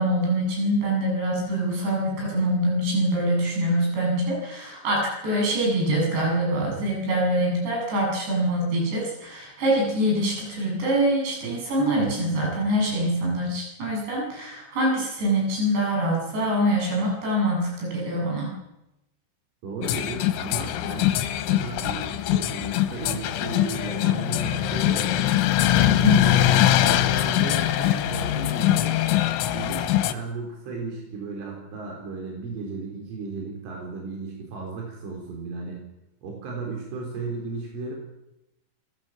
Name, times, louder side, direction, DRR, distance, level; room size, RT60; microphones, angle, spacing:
voice 1, 0.0-18.5 25.9-26.2, right 1 dB, 60° right, -1 dB, 9.6 m, -24 dB
voice 2, 19.6-21.1 21.5-25.3 25.9-29.0 29.4-35.8 36.2-37.9, right 4 dB, 90° right, 0 dB, 6.6 m, -35 dB
sound 1, 19.8-30.1, left 13 dB, 85° left, 3.5 m, -22 dB
29.5 x 16.0 x 7.4 m, 0.92 s
omnidirectional pair, 5.5 m